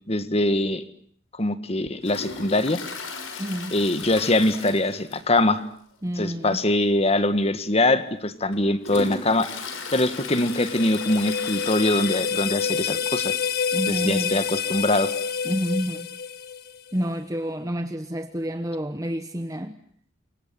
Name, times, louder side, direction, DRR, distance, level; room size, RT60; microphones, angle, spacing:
voice 1, 0.1-0.8 1.3-2.8 3.7-5.6 6.2-9.5 9.9-13.3 13.9-15.1, left 1 dB, 30° left, 1.8 m, -23 dB
Toilet flush, 2.0-5.5 5.7-5.8 6.3-6.4 7.2-7.3 7.9-12.8 13.1-13.2 13.4-13.5 14.5-14.6, left 3 dB, 85° left, 5.7 m, -37 dB
voice 2, 3.4-3.8 6.0-6.6 13.7-14.4 15.4-16.1 16.9-19.8, equal, 15° right, 1.1 m, -29 dB
sound 1, 9.9-16.9, left 7 dB, 50° left, 1.4 m, -28 dB
29.5 x 25.0 x 7.7 m
head